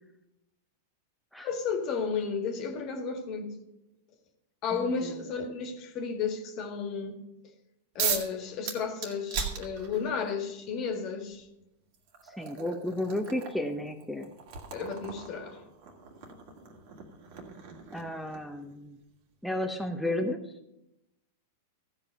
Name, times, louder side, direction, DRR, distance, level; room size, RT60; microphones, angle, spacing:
voice 1, 1.4-3.5 4.6-7.2 7.9-11.5 14.7-15.6, left 5 dB, 45° left, 1.7 m, -33 dB
voice 2, 4.7-5.2 12.2-14.3 17.9-19.0 19.4-20.4, left 1 dB, ahead, 0.8 m, -33 dB
sound 1, 8.0-8.3 8.6-10.2 11.3-11.4 11.9-18.6, right 6 dB, 60° right, 1.9 m, -37 dB
14.5 x 5.5 x 5.4 m
hypercardioid pair, 105°, 0 cm